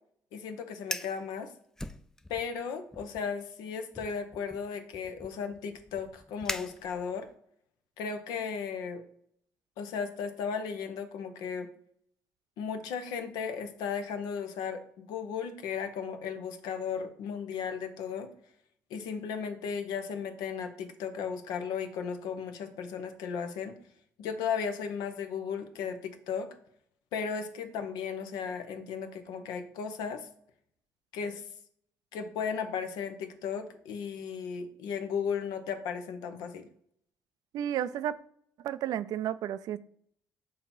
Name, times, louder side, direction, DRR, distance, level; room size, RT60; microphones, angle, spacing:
voice 1, 0.3-1.5 2.3-7.3 8.0-9.0 9.8-11.7 12.6-18.3 18.9-23.8 24.2-26.6 27.1-30.3 31.1-31.4 32.1-36.7, left 6 dB, 85° left, 0.8 m, -35 dB
Fire, 0.8-1.2 1.8-2.6 2.9-3.3 3.9-7.3, left 1 dB, 5° left, 0.4 m, -41 dB
voice 2, 37.5-38.2 38.6-39.8, right 11 dB, 70° right, 0.4 m, -32 dB
6.6 x 2.9 x 5.4 m
supercardioid pair, 75°, 7 cm